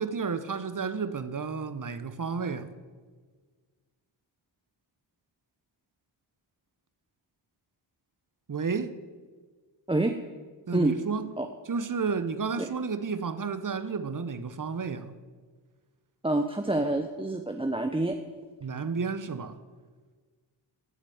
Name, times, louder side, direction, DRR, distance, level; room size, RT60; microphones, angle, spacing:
voice 1, 0.0-2.7 8.5-8.9 10.7-11.2 11.7-15.2 18.6-19.6, right 5 dB, 40° right, 1.0 m, -31 dB
voice 2, 16.2-18.2, right 2 dB, 10° right, 0.8 m, -27 dB
14.0 x 5.1 x 8.6 m
supercardioid pair, 40°, 50 cm